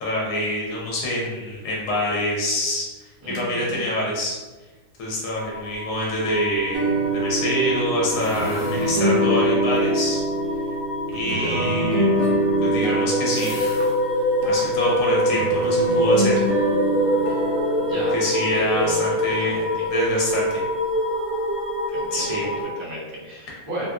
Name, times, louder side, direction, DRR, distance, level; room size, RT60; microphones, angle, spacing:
voice 1, 0.0-2.9 3.3-4.4 5.0-10.2 11.1-12.4 12.6-13.5 14.4-16.5 17.9-19.6 19.9-20.5 22.1-22.5, left 1 dB, 55° left, -4 dB, 1.0 m, -25 dB
sound 1, 1.9-2.3 2.6-2.7 3.0-3.5 8.0-9.2 9.6-10.1 12.1-14.0 14.4-14.9 15.4-16.0 16.3-16.4, left 2 dB, 90° left, 0.7 m, -44 dB
voice 2, 3.2-3.8 11.2-11.6 17.8-19.0 19.4-19.9 21.9-23.9, right 1 dB, 35° right, -7 dB, 0.7 m, -33 dB
sound 2, 5.3-22.7, equal, 15° left, 1.1 m, -26 dB
sound 3, 6.7-19.2, right 1 dB, 85° right, 0.8 m, -25 dB
2.8 x 2.4 x 2.4 m, 1.2 s
omnidirectional pair, 2.1 m